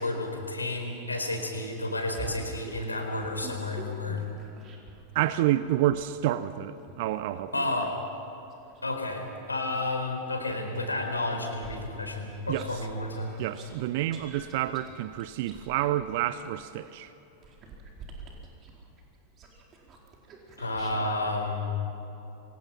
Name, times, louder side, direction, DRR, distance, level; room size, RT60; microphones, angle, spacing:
voice 1, 0.0-4.2 7.5-8.0 8.8-13.3 20.6-21.8, left 2 dB, 80° left, 3 dB, 4.3 m, -31 dB
sound 1, 2.1-5.1 5.6-10.0 10.5-21.2, right 3 dB, 30° right, 4.6 m, -47 dB
voice 2, 5.1-7.6 12.5-12.8 13.4-17.1, right 13 dB, 50° right, 14 dB, 0.7 m, -29 dB
28.5 x 24.5 x 5.9 m, 2.9 s
figure-of-eight pair, 90°, 0 cm